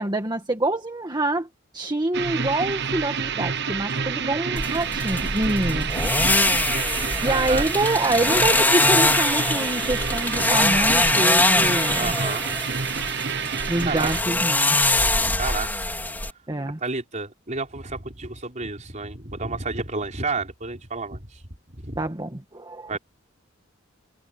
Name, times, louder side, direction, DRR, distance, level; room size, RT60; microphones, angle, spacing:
voice 1, 0.0-1.5 1.7-5.9 6.9-12.1 13.7-14.8 16.5-16.8 22.0-23.0, right 2 dB, 20° right, 1.6 m, -26 dB
sound 1, 2.1-14.2, right 6 dB, 60° right, 1.3 m, -28 dB
sound 2, 4.6-16.3, left 2 dB, 10° left, 3.3 m, -23 dB
voice 2, 7.2-7.7 11.9-12.4 13.8-14.1 15.0-15.7 16.8-22.0 22.9-23.0, right 3 dB, 40° right, 4.4 m, -31 dB
head